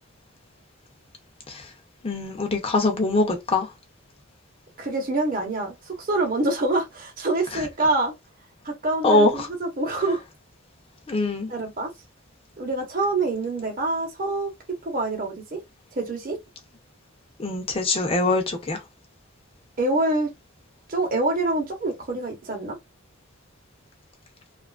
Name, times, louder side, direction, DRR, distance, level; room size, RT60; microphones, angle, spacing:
voice 1, 2.0-3.7 7.5-7.6 9.0-9.5 11.1-11.5 17.4-18.8, left 2 dB, 25° left, 0.6 m, -23 dB
voice 2, 4.8-8.1 8.6-10.2 11.5-11.9 12.6-14.5 14.8-15.6 16.0-16.4 19.8-20.3 20.9-22.7, right 2 dB, 40° right, 0.8 m, -26 dB
2.8 x 2.4 x 2.3 m
head